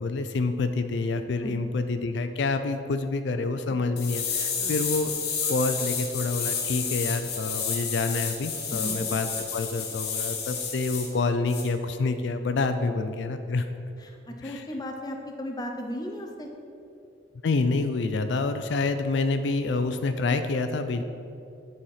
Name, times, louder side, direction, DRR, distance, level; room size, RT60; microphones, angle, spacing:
voice 1, 0.0-5.1 5.5-13.7 14.4-14.6 17.4-21.0, left 3 dB, 80° left, 9 dB, 0.4 m, -27 dB
sound 1, 4.0-11.1 11.5-11.6, left 6 dB, 60° left, 1.1 m, -31 dB
voice 2, 14.0-16.5, equal, 20° left, 3 dB, 0.6 m, -36 dB
10.0 x 4.3 x 4.8 m, 2.5 s
head